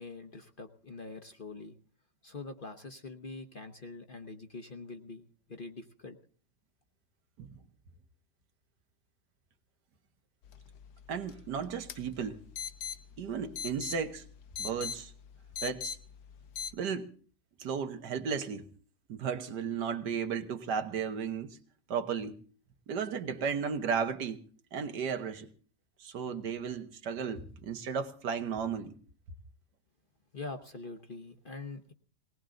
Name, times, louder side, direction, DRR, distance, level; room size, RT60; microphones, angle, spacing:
voice 1, 0.0-1.8 2.2-6.2 30.3-31.9, left 3 dB, 40° left, 0.9 m, -44 dB
sound 1, 10.4-16.7, left 7 dB, 65° left, 1.4 m, -43 dB
voice 2, 11.1-12.4 13.2-14.2 14.6-15.1 15.6-15.9 16.7-17.1 17.6-18.7 19.1-21.6 21.9-22.3 22.9-24.4 24.7-25.5 26.0-28.9, right 6 dB, 80° right, 1.8 m, -34 dB
19.5 x 18.5 x 3.8 m
omnidirectional pair, 1.8 m